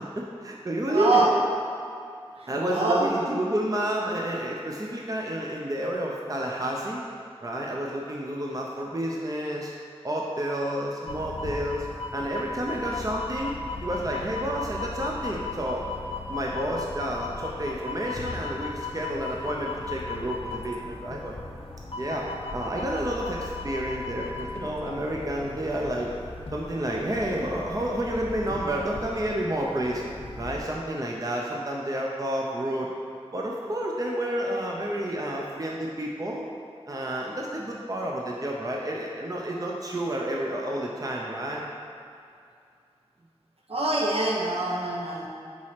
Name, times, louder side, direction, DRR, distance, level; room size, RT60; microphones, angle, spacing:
voice 1, 0.2-1.2 2.5-7.0 7.4-9.7 10.0-11.9 12.1-15.8 16.3-21.3 21.9-22.3 22.5-26.1 26.5-30.0 30.4-32.9 33.3-36.5 36.9-41.6, right 1 dB, 35° right, -2 dB, 0.6 m, -30 dB
voice 2, 0.9-1.4 2.4-3.1 43.7-45.3, right 2 dB, 65° right, -2 dB, 0.9 m, -25 dB
sound 1, 11.1-30.6, left 3 dB, 65° left, 0.6 m, -37 dB
4.7 x 4.2 x 5.7 m, 2.4 s
wide cardioid pair, 55°, 11 cm